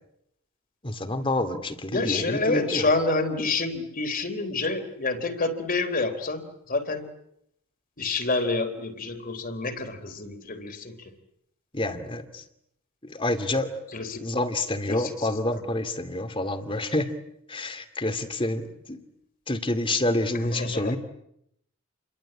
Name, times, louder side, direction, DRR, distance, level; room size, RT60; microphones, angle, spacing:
voice 1, 0.8-2.9 11.7-12.4 13.0-13.7 14.2-17.1 17.5-19.0 19.5-21.0, left 2 dB, 25° left, 9 dB, 2.5 m, -28 dB
voice 2, 1.9-7.1 8.0-11.1 13.9-14.2 14.9-15.7 20.3-21.0, left 3 dB, 40° left, 7 dB, 3.5 m, -28 dB
29.5 x 23.0 x 8.8 m, 0.77 s
head